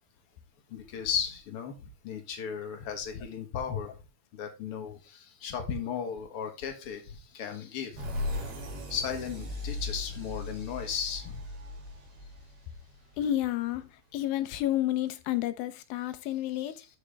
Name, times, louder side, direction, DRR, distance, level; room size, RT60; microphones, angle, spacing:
voice 1, 0.7-4.0 4.3-8.1 8.9-11.4, left 7 dB, 55° left, 1.6 m, -35 dB
sound 1, 8.0-13.5, left 2 dB, 80° right, 4.8 m, -38 dB
voice 2, 13.2-16.9, left 13 dB, 80° left, 2.5 m, -30 dB
12.5 x 5.1 x 3.4 m
omnidirectional pair, 4.3 m